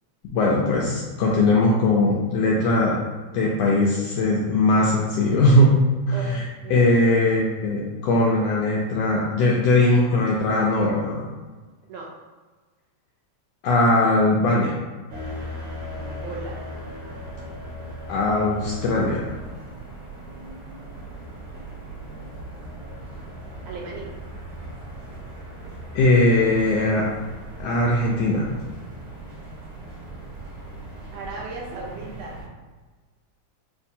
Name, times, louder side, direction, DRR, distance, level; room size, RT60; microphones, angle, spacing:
voice 1, 0.3-3.0 3.3-5.8 6.1-6.4 6.7-11.3 13.6-14.7 18.1-19.3 25.9-27.1 27.6-28.5, left 2 dB, 85° left, -3 dB, 1.5 m, -20 dB
voice 2, 6.6-7.0 11.9-12.1 15.9-16.7 21.9-22.3 23.6-24.1 31.1-32.4, right 3 dB, 75° right, -2 dB, 1.6 m, -37 dB
sound 1, 15.1-32.4, equal, 55° right, 2.2 m, -38 dB
6.9 x 2.5 x 2.7 m, 1.4 s
omnidirectional pair, 3.4 m